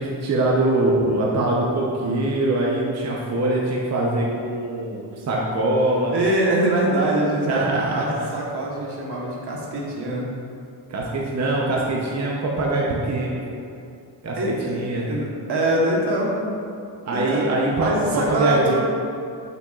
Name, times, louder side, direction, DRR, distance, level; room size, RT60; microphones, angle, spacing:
voice 1, 0.0-6.1 7.5-8.0 10.9-13.6 14.2-14.4 14.7-15.1 17.0-18.7, right 2 dB, 40° right, -3 dB, 0.7 m, -23 dB
voice 2, 6.1-10.3 14.4-14.8 15.1-16.5 17.1-17.4 17.8-18.7, right 1 dB, 70° right, -3 dB, 1.3 m, -23 dB
6.7 x 5.8 x 2.4 m, 2.5 s
cardioid pair, 105°, 42 cm